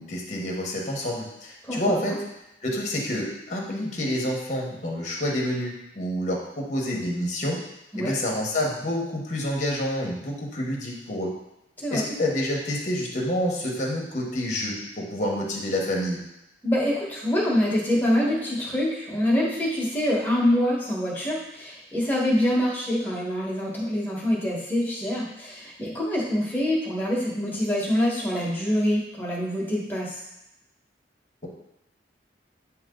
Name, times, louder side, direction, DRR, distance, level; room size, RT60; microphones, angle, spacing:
voice 1, 0.0-2.2 2.6-7.6 8.0-11.3 11.9-16.2, left 1 dB, 45° left, -1 dB, 1.2 m, -28 dB
voice 2, 1.6-2.2 7.9-8.1 11.8-12.0 16.6-30.1, left 1 dB, 10° left, -5 dB, 1.4 m, -25 dB
9.0 x 3.0 x 3.8 m, 0.89 s
head